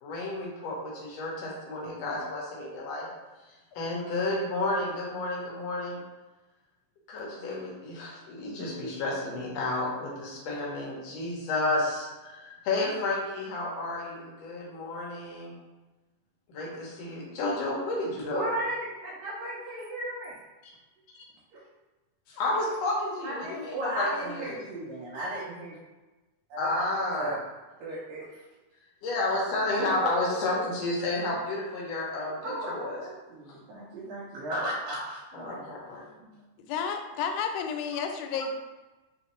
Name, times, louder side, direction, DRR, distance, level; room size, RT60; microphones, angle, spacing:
voice 1, 0.0-3.1 3.5-6.0 7.1-15.6 16.5-18.4 22.3-24.6 26.6-27.4 29.0-33.0 35.3-36.0, left 2 dB, 70° left, -3 dB, 1.5 m, -31 dB
voice 2, 18.3-20.4 21.5-21.6 23.2-25.8 26.5-26.7 27.2-27.4 27.8-28.3 32.4-35.7 36.2-36.3, right 1 dB, 85° right, -8 dB, 2.5 m, -35 dB
voice 3, 36.6-38.6, left 6 dB, 90° left, 5 dB, 2.3 m, -31 dB
5.6 x 3.1 x 3.0 m, 1.2 s
omnidirectional pair, 3.9 m